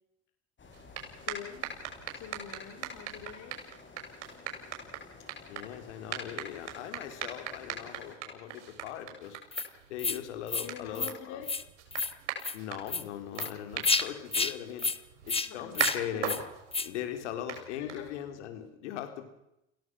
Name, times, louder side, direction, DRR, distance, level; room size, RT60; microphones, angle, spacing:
sound 1, 0.6-8.2, left 4 dB, 35° left, 7.1 m, -54 dB
sound 2, 0.7-18.5, right 7 dB, 85° right, 6.5 m, -41 dB
voice 1, 1.2-1.7 2.1-3.6 10.6-11.5 15.5-15.8 16.1-16.4 17.7-18.2, left 9 dB, 60° left, 5 dB, 4.3 m, -45 dB
voice 2, 5.5-9.4 9.9-11.4 12.5-14.9 15.2-16.4 16.8-19.3, left 10 dB, 85° left, 6 dB, 4.0 m, -40 dB
sound 3, 9.5-9.7 10.0-10.2 10.5-10.7 11.0-11.1 11.4-11.6 11.9-12.1 12.4-12.6 12.9-13.0 13.4-13.5 13.8-14.0 14.3-14.5 14.8-15.0 15.3-15.5 15.8-16.0 16.2-16.4 16.7-16.9, left 4 dB, 15° left, 1.7 m, -30 dB
28.5 x 17.5 x 6.3 m, 0.83 s
hypercardioid pair, 75°, 34 cm